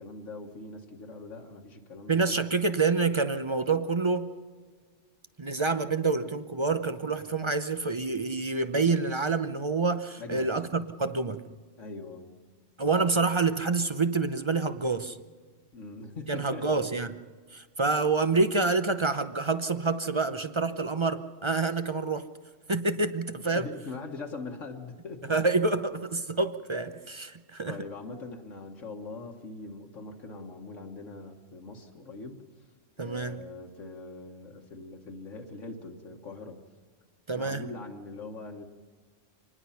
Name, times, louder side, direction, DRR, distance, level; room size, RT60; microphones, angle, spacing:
voice 1, 0.0-2.3 10.2-10.5 11.8-12.4 15.7-16.8 23.5-25.4 27.6-32.4 33.0-36.6 37.3-38.6, left 3 dB, 75° left, 2 dB, 1.8 m, -42 dB
voice 2, 2.1-4.3 5.4-11.5 12.8-15.2 16.3-17.1 17.5-22.2 22.7-23.7 25.3-27.8 33.0-33.4 37.3-37.6, right 3 dB, 30° right, 10 dB, 0.6 m, -27 dB
25.5 x 20.0 x 5.7 m, 1.5 s
omnidirectional pair, 1.3 m